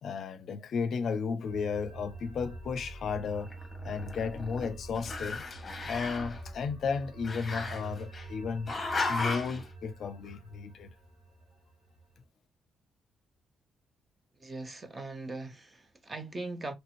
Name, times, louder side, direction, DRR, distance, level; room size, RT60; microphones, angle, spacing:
voice 1, 0.0-3.5 3.8-5.4 5.8-10.9, left 5 dB, 55° left, 0.5 m, -34 dB
sound 1, 1.4-12.2, right 2 dB, 90° right, 1.5 m, -46 dB
Growling, 3.4-4.7 5.0-6.4 7.2-8.2 8.7-9.6, left 3 dB, 25° left, 0.8 m, -35 dB
voice 2, 14.4-16.7, right 2 dB, 20° right, 0.6 m, -40 dB
3.0 x 2.5 x 2.9 m
cardioid pair, 160°, 0 cm